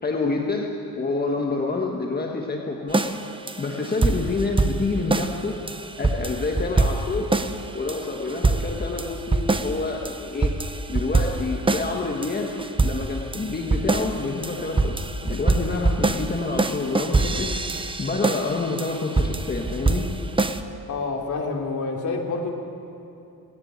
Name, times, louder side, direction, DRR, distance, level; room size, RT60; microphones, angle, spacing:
voice 1, 0.0-3.1 3.6-5.6 6.0-7.3 7.7-10.6 10.9-17.5 18.0-20.1, left 3 dB, 30° left, 0 dB, 1.5 m, -28 dB
sound 1, 2.9-5.4 5.7-7.6 7.9-9.8 10.0-12.0 12.2-20.6, right 3 dB, 15° right, 0.7 m, -24 dB
voice 2, 20.9-22.5, left 3 dB, 60° left, 0 dB, 3.1 m, -27 dB
18.5 x 17.5 x 9.0 m, 2.8 s
wide cardioid pair, 145°, 34 cm